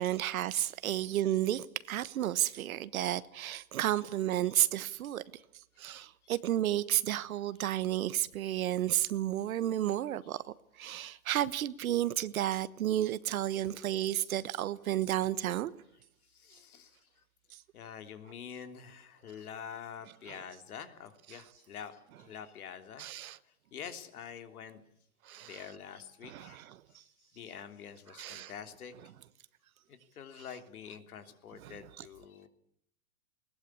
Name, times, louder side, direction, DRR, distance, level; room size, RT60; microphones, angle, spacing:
voice 1, 0.0-5.2 5.8-10.4 10.8-15.8 17.5-17.6 20.3-20.4 23.0-23.4 25.2-25.6 26.2-26.7 28.2-28.5 31.6-31.8, right 12 dB, 70° right, 1.3 m, -32 dB
voice 2, 16.3-17.0 17.7-23.1 23.7-24.8 25.4-26.6 27.3-28.9 29.9-32.5, left 8 dB, 80° left, 3.3 m, -46 dB
21.0 x 19.5 x 8.6 m
hypercardioid pair, 145°, 44 cm